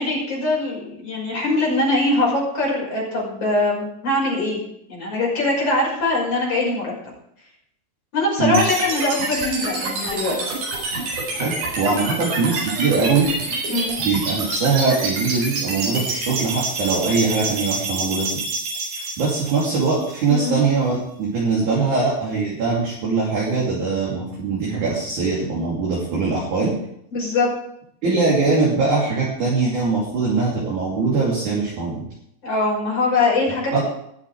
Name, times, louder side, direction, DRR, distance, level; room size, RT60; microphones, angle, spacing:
voice 1, 0.0-4.6 4.9-6.9 8.1-10.5 13.7-13.9 18.9-19.1 20.3-20.5 27.1-27.5 32.4-33.8, left 2 dB, 35° left, -4 dB, 6.5 m, -22 dB
sound 1, 8.5-20.6, right 2 dB, 75° right, 6.6 m, -27 dB
voice 2, 11.3-13.3 14.0-18.3 19.2-26.7 28.0-32.1 33.7-33.8, right 4 dB, 45° right, -5 dB, 4.0 m, -21 dB
20.5 x 7.3 x 4.8 m, 0.74 s
omnidirectional pair, 5.2 m